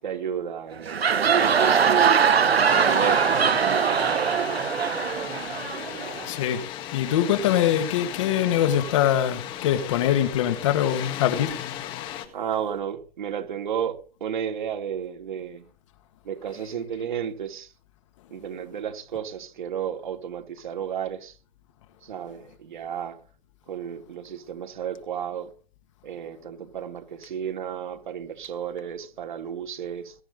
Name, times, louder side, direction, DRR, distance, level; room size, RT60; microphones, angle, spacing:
voice 1, 0.0-1.4 2.1-3.3 3.6-4.4 12.3-15.7 16.2-17.7 18.3-21.4 22.0-23.2 23.7-25.5 26.0-30.1, right 8 dB, 50° right, 3.3 m, -33 dB
sound 1, 0.7-6.3, right 7 dB, 85° right, 1.4 m, -21 dB
Water, 1.3-12.3, left 11 dB, 15° left, 1.8 m, -36 dB
voice 2, 6.3-6.6 6.9-11.5, left 10 dB, 30° left, 2.2 m, -23 dB
22.0 x 10.0 x 4.0 m
hypercardioid pair, 160°, 30 cm